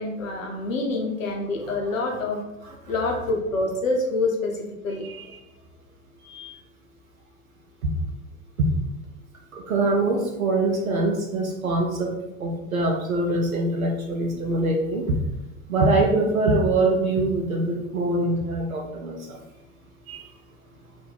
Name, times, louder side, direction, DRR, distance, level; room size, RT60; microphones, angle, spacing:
voice 1, 0.0-2.4 2.9-5.1, left 2 dB, 70° left, 1 dB, 0.7 m, -26 dB
voice 2, 5.0-5.4 6.2-6.5 7.8-8.0 8.6-8.7 9.5-12.1 12.4-15.2 15.7-19.4 20.1-20.3, right 2 dB, 85° right, 1 dB, 0.6 m, -24 dB
2.7 x 2.6 x 3.9 m, 0.90 s
figure-of-eight pair, 85°, 41 cm